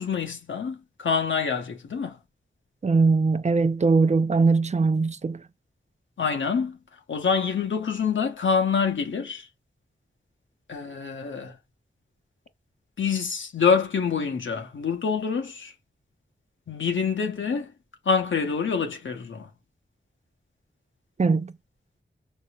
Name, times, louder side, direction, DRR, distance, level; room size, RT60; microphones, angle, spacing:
voice 1, 0.0-2.2 6.2-6.8 7.1-9.5 10.7-11.6 13.0-15.7 16.7-17.7 18.0-19.5, left 6 dB, 75° left, 0.9 m, -26 dB
voice 2, 2.8-5.4 21.2-21.5, right 4 dB, 35° right, 0.5 m, -21 dB
5.3 x 3.5 x 2.3 m
cardioid pair, 40°, 20 cm